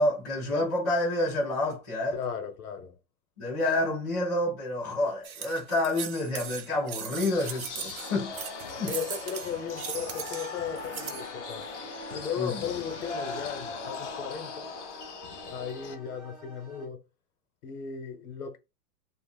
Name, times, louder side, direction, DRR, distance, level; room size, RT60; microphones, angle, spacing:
voice 1, 0.0-2.2 3.4-8.3 8.8-9.0 12.4-12.6, left 1 dB, 15° left, 0.4 m, -28 dB
voice 2, 2.1-3.0 8.9-11.7 12.1-14.7 15.4-17.0 17.6-18.6, left 7 dB, 75° left, 1.0 m, -36 dB
sound 1, 5.2-11.3, right 9 dB, 70° right, 0.7 m, -39 dB
sound 2, 7.2-15.9, left 5 dB, 55° left, 0.6 m, -40 dB
sound 3, 8.0-16.9, right 1 dB, 15° right, 0.7 m, -45 dB
2.5 x 2.3 x 3.2 m
supercardioid pair, 180°, 44 cm